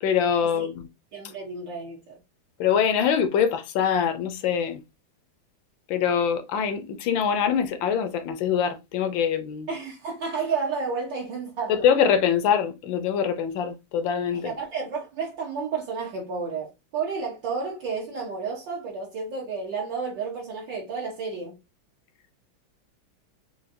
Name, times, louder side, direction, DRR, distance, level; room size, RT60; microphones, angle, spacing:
voice 1, 0.0-0.9 2.6-4.8 5.9-9.7 11.7-14.5, left 7 dB, 70° left, 1.3 m, -24 dB
voice 2, 1.1-2.2 9.7-11.8 14.3-21.6, right 5 dB, 60° right, 1.7 m, -31 dB
5.7 x 2.7 x 2.6 m
omnidirectional pair, 2.4 m